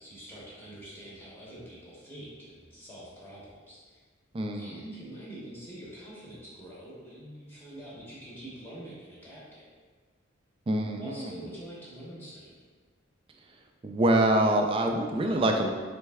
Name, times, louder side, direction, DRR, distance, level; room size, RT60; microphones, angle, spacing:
voice 1, 0.0-4.0 4.5-9.7 11.0-12.6, right 1 dB, 10° left, -8 dB, 0.8 m, -45 dB
voice 2, 4.3-4.8 10.7-11.3 13.8-15.7, right 1 dB, 25° right, 3 dB, 0.3 m, -25 dB
3.3 x 3.1 x 3.4 m, 1.5 s
head